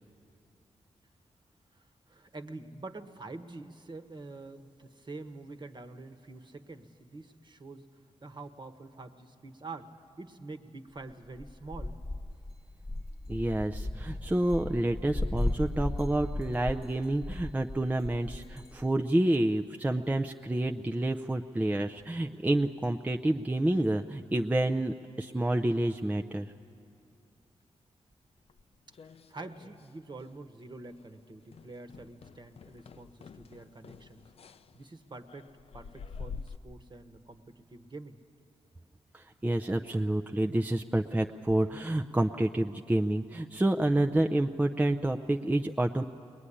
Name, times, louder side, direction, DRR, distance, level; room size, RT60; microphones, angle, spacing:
voice 1, 1.7-7.9 8.2-9.9 10.2-12.0 28.9-38.2, right 3 dB, 40° right, 8 dB, 1.3 m, -46 dB
sound 1, 11.3-18.9, left 1 dB, 30° left, 1.2 m, -36 dB
voice 2, 13.3-26.5 39.1-46.0, right 1 dB, 15° right, 4 dB, 0.5 m, -29 dB
sound 2, 28.5-29.9 30.2-30.6 30.9-31.1 31.5-36.6, left 5 dB, 55° left, 0.5 m, -47 dB
21.5 x 20.5 x 9.9 m, 2.5 s
wide cardioid pair, 90°, 12 cm